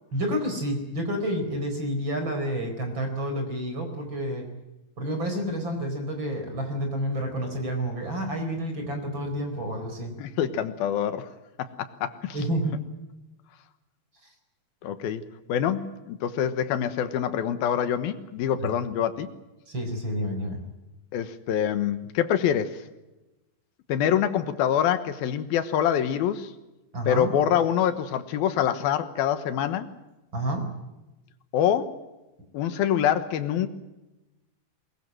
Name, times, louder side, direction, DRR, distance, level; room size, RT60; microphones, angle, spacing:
voice 1, 0.1-4.5 5.0-10.1 12.3-12.7 18.6-18.7 19.7-20.6 26.9-27.3 30.3-30.6, equal, 30° right, 5 dB, 4.9 m, -29 dB
voice 2, 10.2-11.3 11.6-12.4 14.8-15.2 15.5-19.3 21.1-22.8 23.9-26.5 27.1-29.9 31.5-32.0 32.5-33.7, left 9 dB, 80° left, 11 dB, 3.0 m, -25 dB
22.0 x 22.0 x 7.5 m, 1.0 s
omnidirectional pair, 4.2 m